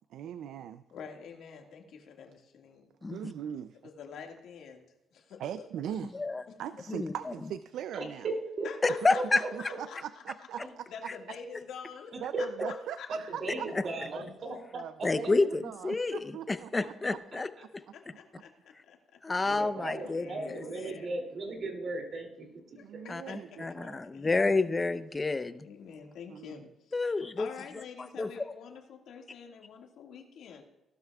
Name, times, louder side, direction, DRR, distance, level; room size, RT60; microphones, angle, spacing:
voice 1, 0.1-0.8 3.1-3.8 5.4-6.1 6.6-8.3 9.0-10.9 11.3-11.4 12.2-13.7 14.1-14.2 14.7-17.4 17.9-18.0 19.5-20.1 22.8-24.1 24.3-24.6 26.3-26.6, right 9 dB, 80° right, 12 dB, 0.4 m, -41 dB
voice 2, 0.9-2.9 3.8-4.9 5.1-5.7 6.5-6.6 8.6-10.0 10.9-12.5 13.0-13.1 17.9-19.7 20.0-21.1 22.8-23.8 24.1-24.5 25.6-30.6, left 6 dB, 75° left, 2 dB, 1.8 m, -47 dB
voice 3, 7.9-9.8 12.3-12.7 13.1-15.1 19.4-22.8, right 2 dB, 50° right, 2 dB, 2.6 m, -37 dB
voice 4, 9.0-9.4 15.0-17.5 19.2-20.6 23.1-25.6 26.9-27.5 28.2-28.5, left 3 dB, 25° left, 11 dB, 0.7 m, -29 dB
17.0 x 12.0 x 2.3 m, 0.93 s
cardioid pair, 90°, 0 cm